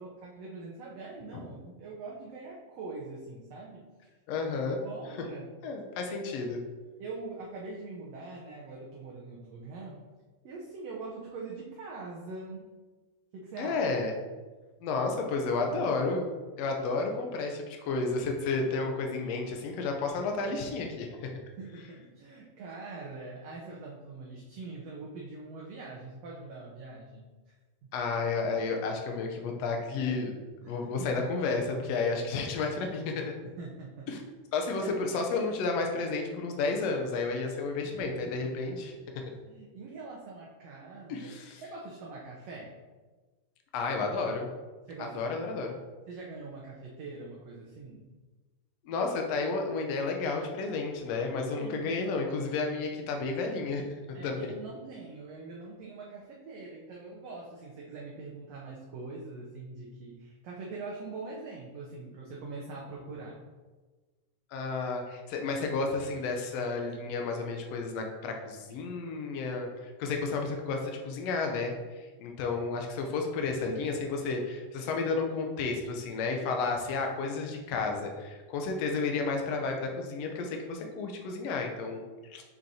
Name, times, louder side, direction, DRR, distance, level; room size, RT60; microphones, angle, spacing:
voice 1, 0.0-4.1 4.8-5.5 6.1-6.4 7.0-10.0 10.4-12.7 13.3-13.8 21.6-27.5 27.8-27.9 30.6-31.3 33.4-34.3 34.8-34.9 37.8-38.2 38.4-38.5 39.4-41.3 41.6-42.7 44.9-45.2 46.1-48.1 51.5-52.2 54.1-63.4, right 3 dB, 70° right, -3 dB, 1.6 m, -43 dB
voice 2, 4.3-4.8 5.6-6.6 13.6-14.1 14.8-16.3 16.6-21.3 27.9-30.3 30.6-33.2 34.1-34.2 34.5-38.9 41.1-41.6 43.7-44.5 45.0-45.8 48.8-54.5 64.5-82.4, left 4 dB, 75° left, 2 dB, 1.5 m, -32 dB
7.3 x 6.2 x 2.8 m, 1.3 s
omnidirectional pair, 3.8 m